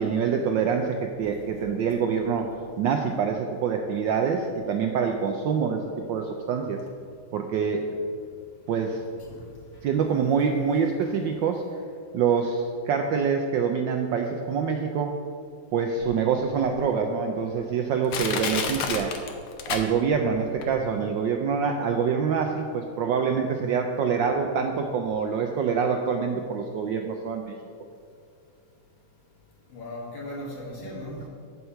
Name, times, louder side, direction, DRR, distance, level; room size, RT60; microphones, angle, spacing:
voice 1, 0.0-5.8 6.1-6.8 7.3-7.8 8.7-9.0 9.8-11.6 12.1-15.2 15.7-19.2 19.7-27.5, right 6 dB, 75° right, 4 dB, 1.1 m, -25 dB
Crushing, 16.0-16.1 16.8-16.9 17.5-17.6 18.1-20.3 20.6-20.7, left 6 dB, 80° left, 1.7 m, -30 dB
voice 2, 29.7-31.3, left 1 dB, 60° left, -4 dB, 2.3 m, -37 dB
7.8 x 5.6 x 5.6 m, 2.4 s
omnidirectional pair, 2.4 m